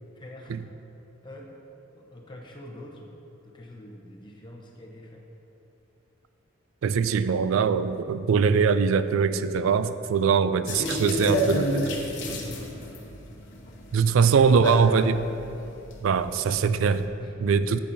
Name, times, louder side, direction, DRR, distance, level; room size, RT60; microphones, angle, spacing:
voice 1, 0.1-0.6 1.2-1.6 1.9-3.1 3.4-5.3 12.4-13.0 14.1-15.2 17.2-17.8, left 1 dB, 25° left, -1 dB, 0.9 m, -44 dB
voice 2, 6.8-11.9 13.9-15.2 16.0-17.0 17.4-17.8, right 6 dB, 70° right, 12 dB, 0.3 m, -22 dB
sound 1, 10.7-17.1, equal, 65° left, 0.9 m, -31 dB
8.5 x 8.4 x 2.7 m, 2.8 s
head